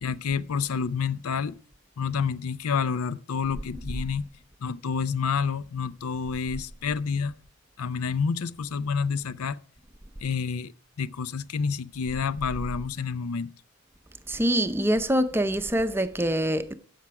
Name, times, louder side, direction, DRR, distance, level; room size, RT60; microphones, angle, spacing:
voice 1, 0.0-1.6 2.0-4.3 4.6-7.3 7.8-9.6 10.2-10.7 11.0-13.5, left 6 dB, 85° left, 0.5 m, -29 dB
voice 2, 14.3-16.7, right 1 dB, 10° right, 0.5 m, -25 dB
16.0 x 5.9 x 4.7 m
head